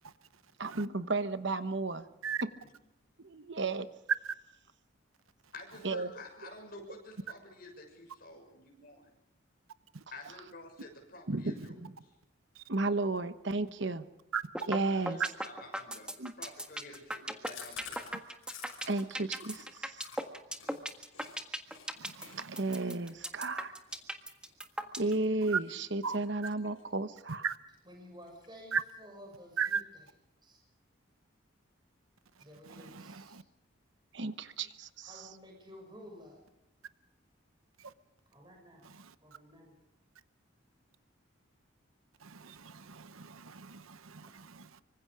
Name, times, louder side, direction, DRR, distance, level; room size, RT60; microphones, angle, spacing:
voice 1, 0.6-2.1 3.2-3.9 5.8-6.1 11.3-11.9 12.7-14.0 14.7-15.2 16.2-16.3 18.9-20.0 22.5-23.7 25.0-27.4 34.1-35.3, right 3 dB, 60° right, 1.1 m, -33 dB
voice 2, 5.5-9.1 10.1-12.1 14.9-18.2, left 2 dB, 45° left, 6.6 m, -50 dB
sound 1, 14.5-14.8 15.1-25.1, right 1 dB, 5° right, 1.5 m, -37 dB
Chewing mastication, 17.4-21.4 21.7-21.9 22.2-25.2 25.6-25.9 26.2-27.1 27.3-27.4 27.7-27.8 28.1-28.7, left 7 dB, 75° left, 6.2 m, -51 dB
voice 3, 22.0-22.6 26.0-26.2 27.4-27.6 28.7-28.8 29.6-29.8 32.8-33.4 42.2-44.8, right 6 dB, 85° right, 1.0 m, -37 dB
voice 4, 27.8-30.0 30.4-30.6 32.4-33.4 35.1-36.4 38.3-38.9 39.2-39.7, equal, 20° right, 6.6 m, -52 dB
26.0 x 25.0 x 5.0 m
head